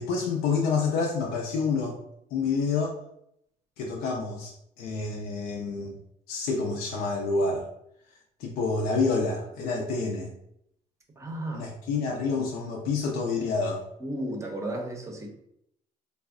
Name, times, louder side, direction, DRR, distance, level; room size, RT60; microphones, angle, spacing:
voice 1, 0.0-2.0 2.3-2.9 3.8-6.0 6.3-7.7 8.4-10.3 11.5-13.8, left 4 dB, 85° left, -1 dB, 0.5 m, -28 dB
voice 2, 11.2-11.7 14.0-15.3, right 1 dB, 20° right, 2 dB, 0.6 m, -33 dB
3.3 x 2.1 x 3.5 m, 0.76 s
cardioid pair, 145°, 15 cm